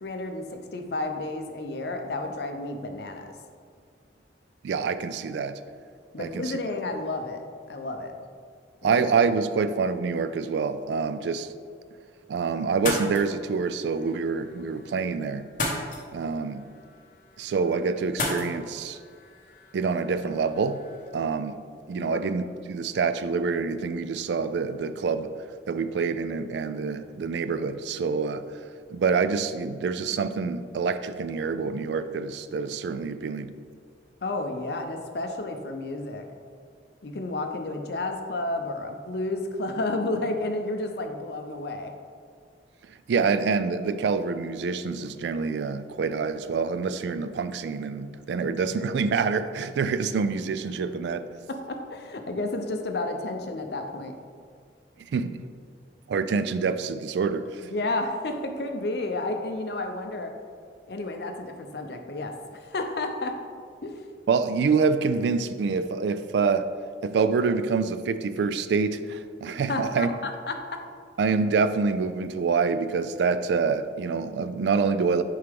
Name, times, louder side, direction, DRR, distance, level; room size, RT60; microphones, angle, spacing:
voice 1, 0.0-3.3 6.1-7.4 7.7-8.1 8.8-9.0 22.0-22.2 34.2-36.3 37.0-42.0 51.5-54.1 57.6-60.3 60.9-63.4 63.8-64.0 69.5-70.8, left 2 dB, 65° left, 5 dB, 0.6 m, -31 dB
voice 2, 4.6-5.6 6.2-6.6 8.8-11.5 12.3-15.5 16.1-16.7 17.4-19.0 19.7-20.8 21.1-21.6 21.9-25.3 25.7-28.4 28.9-33.5 43.1-51.3 55.1-55.4 56.1-57.7 64.3-66.7 67.0-70.1 71.2-75.2, right 5 dB, 75° right, 11 dB, 0.3 m, -26 dB
sound 1, 12.7-21.1, left 2 dB, 45° left, 1.0 m, -36 dB
6.6 x 4.6 x 3.5 m, 2.1 s
head